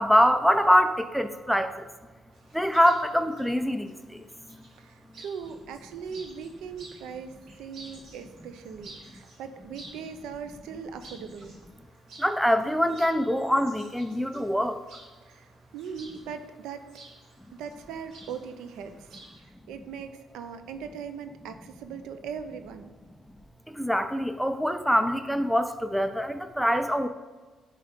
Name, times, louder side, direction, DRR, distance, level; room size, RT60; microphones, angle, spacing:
voice 1, 0.0-1.7 2.5-4.2 12.2-14.8 23.8-27.1, equal, ahead, 9 dB, 0.4 m, -24 dB
Chirp tweet, 2.3-19.4, right 2 dB, 75° right, 2.0 m, -52 dB
voice 2, 4.8-11.5 15.3-16.9 17.5-19.1 19.4-22.9, right 6 dB, 90° right, 9 dB, 0.5 m, -40 dB
10.5 x 3.8 x 3.5 m, 1.4 s
cardioid pair, 90°, 0 cm